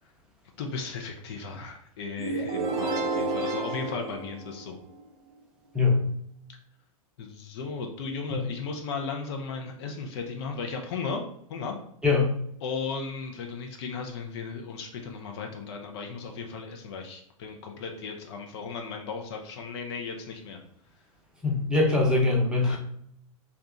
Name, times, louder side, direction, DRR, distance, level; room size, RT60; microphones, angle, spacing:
voice 1, 0.6-4.8 7.2-11.2 11.5-11.8 12.6-20.6 22.6-22.8, left 5 dB, 50° left, 3 dB, 0.6 m, -36 dB
sound 1, 2.2-5.0, right 3 dB, 40° right, 0.8 m, -30 dB
voice 2, 12.0-12.3 21.4-22.8, left 3 dB, 5° right, -3 dB, 0.8 m, -22 dB
2.8 x 2.3 x 3.6 m, 0.71 s
figure-of-eight pair, 100°, 18 cm